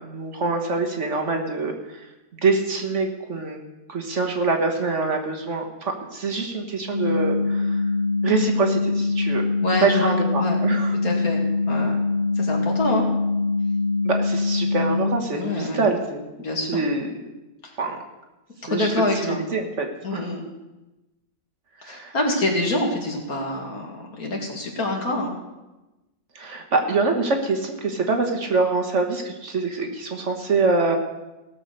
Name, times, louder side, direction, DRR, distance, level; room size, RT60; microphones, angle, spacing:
voice 1, 0.0-2.0 2.3-3.6 3.9-7.8 8.2-9.4 9.8-10.9 14.0-16.2 16.7-17.0 17.8-18.0 18.7-18.9 19.2-19.9 20.1-20.3 21.8-22.1 26.3-31.0, right 3 dB, 50° right, 3 dB, 1.5 m, -25 dB
sound 1, 6.9-15.2, left 3 dB, 50° left, 1.0 m, -23 dB
voice 2, 9.6-10.7 11.0-11.4 11.7-12.0 12.4-13.1 15.3-15.8 16.4-16.9 17.6-17.7 18.6-19.4 20.0-20.4 21.8-25.3, left 1 dB, 65° left, 0 dB, 2.7 m, -26 dB
17.5 x 6.8 x 6.6 m, 1.0 s
omnidirectional pair, 1.7 m